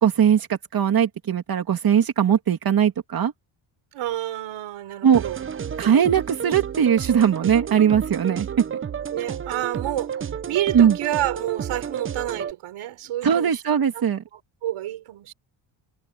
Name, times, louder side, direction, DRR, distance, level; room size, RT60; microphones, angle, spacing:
voice 1, 0.0-3.3 5.0-5.2 5.8-8.5 10.7-11.0 13.2-14.2, right 8 dB, 45° right, 2.8 m, -20 dB
voice 2, 3.9-5.4 9.1-13.6 14.6-15.3, right 13 dB, 80° right, 5.0 m, -29 dB
sound 1, 5.1-12.5, right 7 dB, 25° right, 0.6 m, -31 dB
cardioid pair, 135°, 48 cm